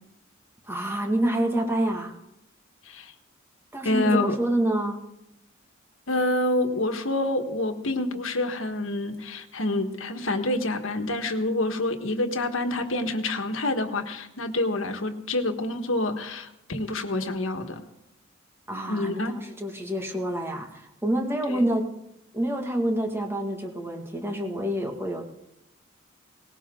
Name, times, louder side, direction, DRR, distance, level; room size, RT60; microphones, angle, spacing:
voice 1, 0.7-2.2 3.7-5.0 18.7-21.9 22.3-25.2, right 1 dB, 10° right, 2 dB, 2.0 m, -27 dB
voice 2, 3.8-4.4 6.1-17.8 18.7-19.3 21.5-21.7, left 2 dB, 75° left, 6 dB, 1.6 m, -27 dB
19.0 x 17.5 x 3.8 m, 0.83 s
head